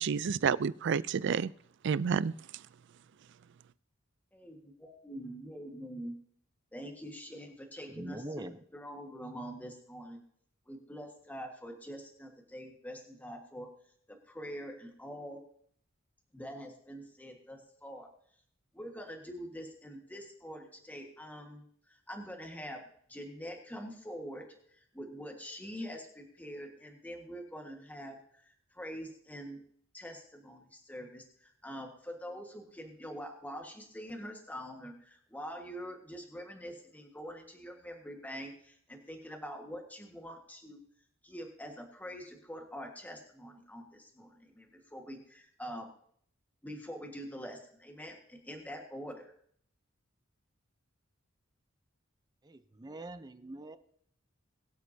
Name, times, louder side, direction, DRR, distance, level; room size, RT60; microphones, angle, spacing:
voice 1, 0.0-1.5 1.8-2.3, right 6 dB, 60° right, 0.4 m, -29 dB
voice 2, 4.3-6.2 6.7-8.4 8.7-10.2 10.7-13.7 14.1-15.4 16.3-18.1 18.7-22.8 23.1-29.6 29.9-40.8 41.2-45.9 46.6-49.3, equal, 10° left, 1.6 m, -45 dB
voice 3, 7.9-8.6 52.4-53.8, right 1 dB, 20° right, 0.7 m, -43 dB
22.5 x 8.0 x 2.8 m
head